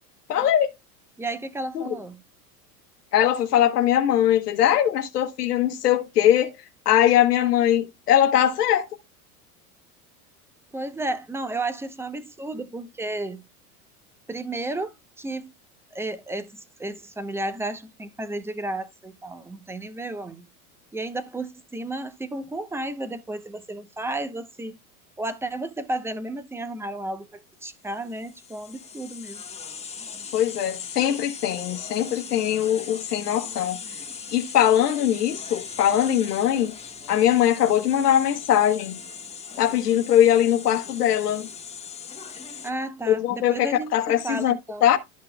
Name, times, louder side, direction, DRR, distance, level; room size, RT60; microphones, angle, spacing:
voice 1, 0.3-0.7 1.7-1.8 3.1-6.5 6.9-8.9 30.3-33.8 34.3-36.8 37.1-39.0 39.6-41.5 43.1-44.5 44.8-45.0, left 11 dB, 90° left, 1.0 m, -21 dB
voice 2, 1.2-2.2 10.7-13.4 14.3-15.5 15.9-20.5 20.9-24.8 25.2-29.4 42.6-44.9, right 2 dB, 5° right, 0.9 m, -33 dB
sound 1, 28.0-42.7, left 5 dB, 15° left, 1.6 m, -39 dB
12.5 x 5.8 x 2.3 m
hypercardioid pair, 100°, 45 cm